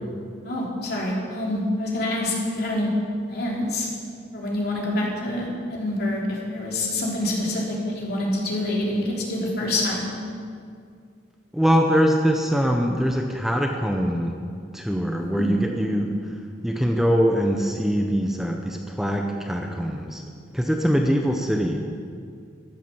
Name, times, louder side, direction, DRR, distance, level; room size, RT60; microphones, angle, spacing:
voice 1, 0.4-2.9 3.3-3.9 4.3-10.1 15.2-15.6, left 1 dB, 55° left, -3 dB, 3.4 m, -26 dB
voice 2, 11.5-14.4 14.7-16.4 16.6-20.3 20.5-21.8, equal, ahead, 2 dB, 0.8 m, -23 dB
13.5 x 11.0 x 7.0 m, 2.3 s
head